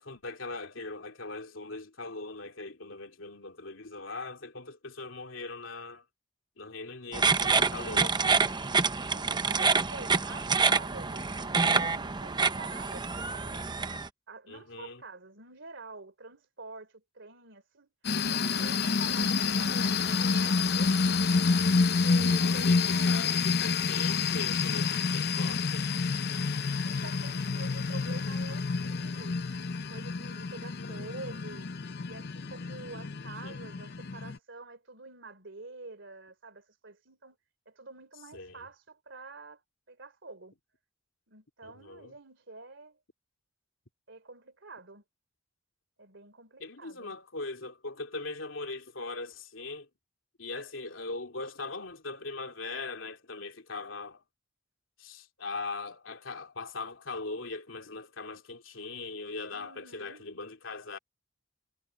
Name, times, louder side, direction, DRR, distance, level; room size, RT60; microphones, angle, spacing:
voice 1, 0.0-6.0 6.6-8.2 14.5-15.0 22.2-25.9 30.8-31.2 32.9-33.6 38.3-38.7 41.6-42.1 46.6-49.9 50.4-54.2 55.0-61.0, left 3 dB, 85° left, 2.9 m, -40 dB
sound 1, 7.1-14.1, right 4 dB, 25° right, 0.8 m, -27 dB
voice 2, 9.1-13.7 14.3-17.9 18.2-21.3 21.8-23.1 26.8-29.5 29.9-31.7 32.0-37.4 37.7-39.6 39.9-40.5 41.3-43.0 44.1-45.0 46.0-47.2 59.5-60.3, right 3 dB, 70° right, 3.4 m, -47 dB
sound 2, 18.0-34.4, left 4 dB, 55° left, 0.7 m, -28 dB
head